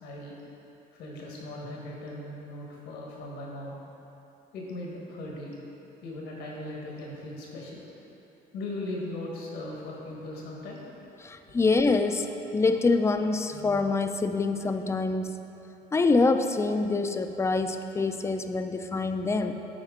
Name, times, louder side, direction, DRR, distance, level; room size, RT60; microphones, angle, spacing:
voice 1, 0.0-0.3 0.9-3.8 4.5-5.6 6.0-7.9 8.5-10.8 11.5-11.6, left 1 dB, 85° left, -3 dB, 1.5 m, -38 dB
voice 2, 11.2-15.4 15.9-19.5, left 3 dB, 15° left, 7 dB, 0.4 m, -25 dB
11.0 x 4.4 x 3.7 m, 2.9 s
cardioid pair, 110°, 17 cm